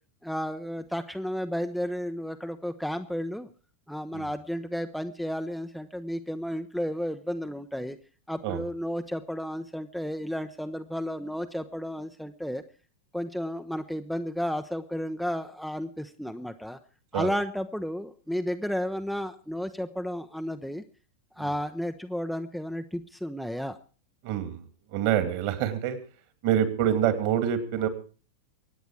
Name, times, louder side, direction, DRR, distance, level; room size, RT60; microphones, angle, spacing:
voice 1, 0.2-3.5 3.9-8.0 8.3-12.6 13.1-16.8 17.1-20.8 21.4-23.8, equal, ahead, 7 dB, 0.7 m, -32 dB
voice 2, 24.2-24.6 24.9-26.0 26.4-27.9, right 10 dB, 45° right, 10 dB, 2.4 m, -26 dB
23.5 x 9.3 x 4.7 m, 0.37 s
figure-of-eight pair, 90°, 0 cm